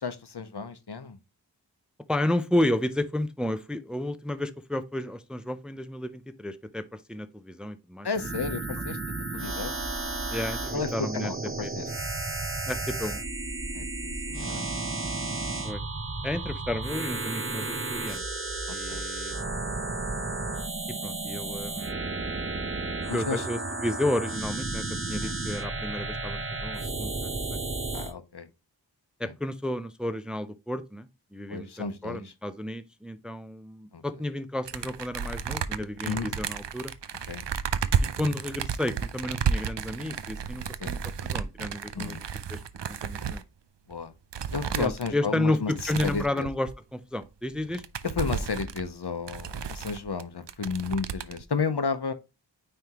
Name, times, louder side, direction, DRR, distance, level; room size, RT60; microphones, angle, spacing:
voice 1, 0.0-1.2 8.0-9.7 10.7-11.9 13.7-14.7 18.7-19.0 23.1-23.4 25.2-25.3 27.9-28.5 29.2-29.3 31.5-32.2 33.9-34.0 36.0-36.4 37.3-37.4 40.8-40.9 41.9-42.2 43.9-44.1 44.5-46.5 48.2-52.1, left 5 dB, 65° left, 0.8 m, -33 dB
voice 2, 2.1-8.1 10.3-11.3 11.6-11.7 12.7-13.2 15.6-15.8 16.2-18.2 18.7-19.3 21.0-22.0 23.1-27.6 29.2-36.9 38.2-42.2 42.5-42.6 42.9-43.4 44.8-47.8, left 1 dB, ahead, 0.5 m, -32 dB
sound 1, 8.1-28.1, right 3 dB, 30° right, 0.8 m, -33 dB
sound 2, 34.7-43.4 43.9-44.0 44.3-45.1 45.7-46.7 47.2-47.3 47.5-50.2 50.5-51.4, right 7 dB, 80° right, 0.6 m, -32 dB
9.3 x 3.5 x 2.9 m
wide cardioid pair, 50°, 42 cm